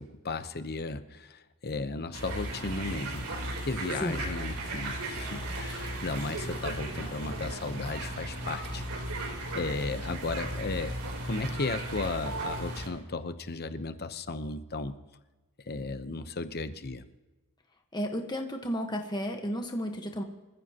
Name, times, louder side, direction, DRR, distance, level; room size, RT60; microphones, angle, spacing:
voice 1, 0.0-3.3 3.6-8.8 9.2-15.0 15.7-17.0, left 3 dB, 45° left, 11 dB, 0.9 m, -35 dB
sound 1, 2.1-12.9, right 1 dB, 85° right, 3.7 m, -36 dB
voice 2, 17.9-20.2, equal, 20° left, 3 dB, 1.3 m, -33 dB
26.0 x 15.0 x 3.0 m, 1.1 s
head